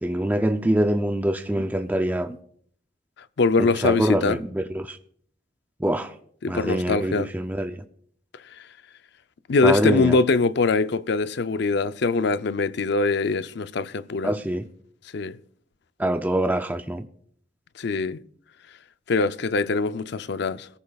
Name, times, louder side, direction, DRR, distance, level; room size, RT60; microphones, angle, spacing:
voice 1, 0.0-2.4 3.6-5.0 5.8-6.1 6.5-7.8 9.6-10.2 14.2-14.7 16.0-17.0, right 1 dB, 10° right, 0.5 m, -24 dB
voice 2, 3.4-4.4 6.4-7.3 9.5-14.3 15.1-15.4 17.8-18.2 19.1-20.7, left 3 dB, 65° left, 0.5 m, -23 dB
22.5 x 14.5 x 2.4 m
head